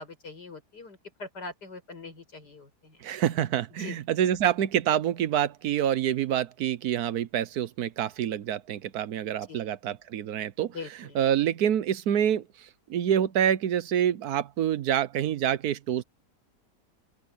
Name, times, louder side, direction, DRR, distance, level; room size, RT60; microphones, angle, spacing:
voice 1, 0.0-3.0 3.8-4.0 9.5-9.7 10.7-11.3, left 3 dB, 85° left, 6.6 m, -42 dB
voice 2, 3.0-10.7 11.1-12.4 12.9-16.0, right 10 dB, 70° right, 1.3 m, -26 dB
open air
omnidirectional pair, 1.7 m